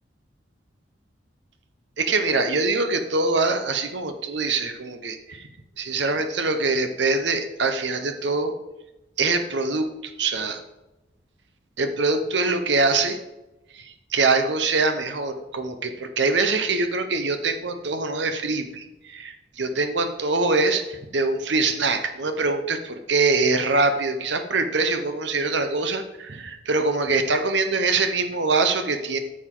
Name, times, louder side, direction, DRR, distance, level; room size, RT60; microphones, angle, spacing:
voice 1, 2.0-5.5 5.8-8.5 9.2-10.6 11.8-13.2 13.7-29.2, right 3 dB, 65° right, 7 dB, 0.9 m, -24 dB
9.4 x 6.5 x 3.9 m, 0.98 s
head